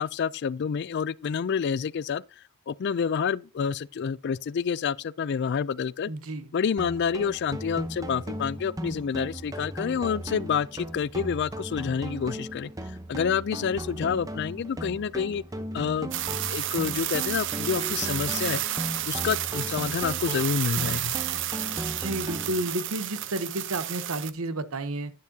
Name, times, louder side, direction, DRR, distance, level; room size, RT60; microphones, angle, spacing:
voice 1, 0.0-2.2 2.7-6.1 6.5-12.7 13.1-15.4 15.7-18.6 19.1-21.1, left 6 dB, 50° left, 0.3 m, -28 dB
voice 2, 6.1-6.5 21.8-25.1, right 1 dB, 80° right, 1.0 m, -31 dB
sound 1, 6.8-22.8, right 1 dB, 15° right, 0.8 m, -37 dB
sound 2, 16.1-24.3, right 12 dB, 60° right, 0.7 m, -31 dB
11.0 x 9.5 x 2.8 m
head